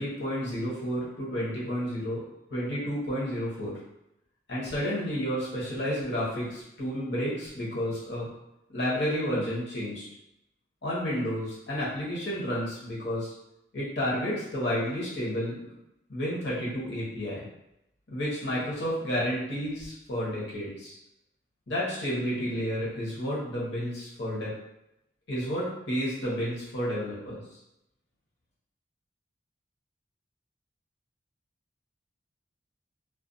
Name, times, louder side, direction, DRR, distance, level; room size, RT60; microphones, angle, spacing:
voice 1, 0.0-2.2 2.5-3.7 4.5-8.3 8.7-10.0 10.8-13.3 13.7-15.7 16.1-17.4 18.1-20.9 21.7-24.5 25.3-27.4, equal, 70° left, -6 dB, 0.9 m, -31 dB
2.3 x 2.2 x 2.5 m, 0.84 s
head